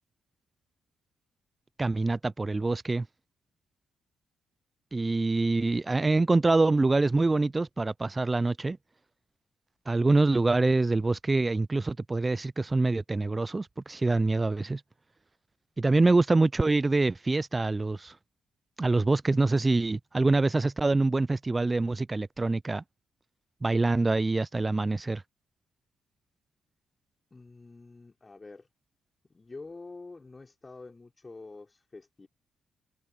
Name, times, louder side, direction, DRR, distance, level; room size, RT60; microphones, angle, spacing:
voice 1, 1.8-3.1 4.9-8.8 9.9-14.8 15.8-18.1 18.8-22.8 23.6-25.2, right 3 dB, 30° right, 0.3 m, -25 dB
voice 2, 27.3-28.7 29.3-32.3, left 3 dB, 30° left, 3.2 m, -47 dB
hypercardioid pair, 45°, 0 cm